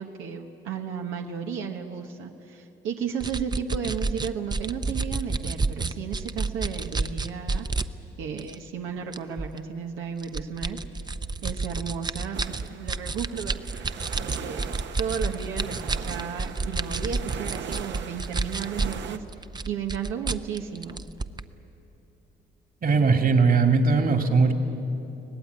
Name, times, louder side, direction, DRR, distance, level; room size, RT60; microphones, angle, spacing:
voice 1, 0.0-7.7 8.2-10.8 11.4-13.6 13.9-14.7 15.0-19.2 19.7-21.0, right 7 dB, 90° right, 2 dB, 1.3 m, -34 dB
sound 1, 3.2-7.9 8.4-8.5 9.1-9.6 10.2-19.0 19.3-21.4, right 3 dB, 20° right, 0.7 m, -29 dB
sound 2, 12.3-19.2, right 7 dB, 65° right, 1.2 m, -40 dB
voice 2, 22.8-24.5, right 4 dB, 45° right, 6 dB, 2.2 m, -20 dB
24.5 x 18.0 x 9.6 m, 3.0 s
cardioid pair, 90°, 20 cm